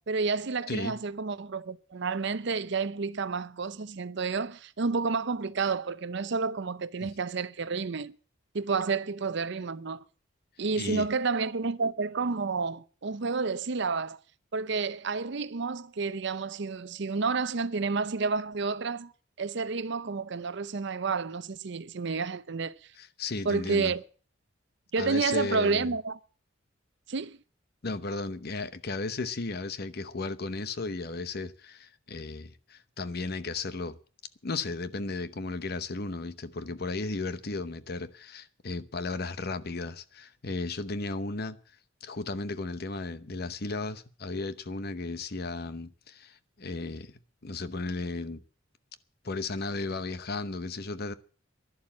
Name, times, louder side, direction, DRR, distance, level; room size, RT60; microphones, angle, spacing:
voice 1, 0.0-8.1 8.5-10.0 10.6-14.2 14.5-19.1 19.4-22.7 23.4-24.0 24.9-26.2 27.1-27.4, right 4 dB, 60° right, 0.7 m, -30 dB
voice 2, 10.8-11.1 23.0-24.0 25.0-25.9 27.8-34.0 34.4-41.6 42.0-47.1 47.4-48.4 49.2-51.1, left 3 dB, 55° left, 0.9 m, -35 dB
11.5 x 11.5 x 7.4 m
head